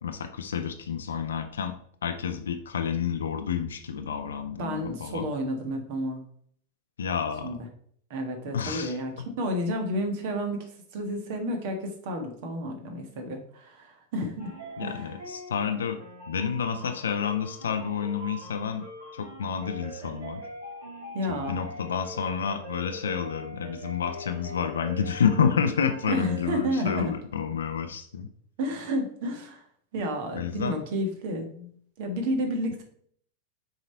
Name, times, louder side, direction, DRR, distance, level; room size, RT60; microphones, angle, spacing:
voice 1, 0.0-1.7 2.0-5.3 7.0-7.5 8.5-9.0 14.8-16.0 16.3-18.9 19.1-20.4 21.3-28.3 30.4-30.8, left 7 dB, 65° left, 7 dB, 0.6 m, -29 dB
voice 2, 4.6-6.3 7.4-7.6 8.1-10.6 10.9-14.5 14.8-15.1 21.1-21.6 26.1-27.1 28.6-29.6 29.9-31.7 32.0-32.8, equal, 50° right, 4 dB, 1.5 m, -31 dB
sound 1, 14.4-27.0, equal, 70° right, 2.8 m, -42 dB
6.9 x 4.0 x 4.5 m, 0.62 s
figure-of-eight pair, 90°, 0 cm